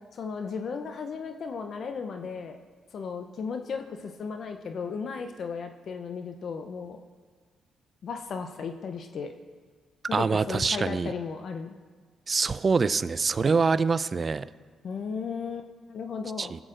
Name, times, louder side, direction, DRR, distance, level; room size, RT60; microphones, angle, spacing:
voice 1, 0.1-2.6 2.9-7.0 8.0-9.3 10.1-11.7 14.8-16.5, left 5 dB, 60° left, 6 dB, 0.7 m, -35 dB
voice 2, 10.1-11.1 12.3-14.5 16.4-16.6, right 4 dB, 45° right, 16 dB, 0.4 m, -25 dB
22.0 x 8.0 x 2.6 m, 1.5 s
supercardioid pair, 50°, 0 cm